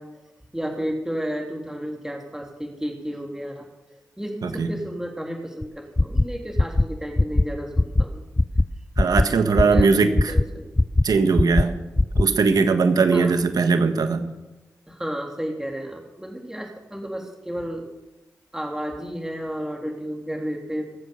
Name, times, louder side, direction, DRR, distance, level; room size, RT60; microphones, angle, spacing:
voice 1, 0.0-8.2 9.3-9.9 10.3-10.7 13.1-13.4 14.9-17.8 18.5-21.0, equal, 10° right, 1 dB, 3.2 m, -32 dB
sound 1, 5.6-5.7 6.0-6.2 6.6-6.8 7.2-7.4 7.8-8.0 8.4-8.6 9.0-9.2 9.6-9.8 10.2-10.4 10.8-11.0 11.4-11.6 12.0-12.2, left 2 dB, 20° left, 0.5 m, -18 dB
voice 2, 9.0-10.3 11.0-11.7 12.2-14.2, right 4 dB, 75° right, 8 dB, 1.5 m, -20 dB
21.0 x 7.9 x 7.0 m, 1.0 s
cardioid pair, 45°, 7 cm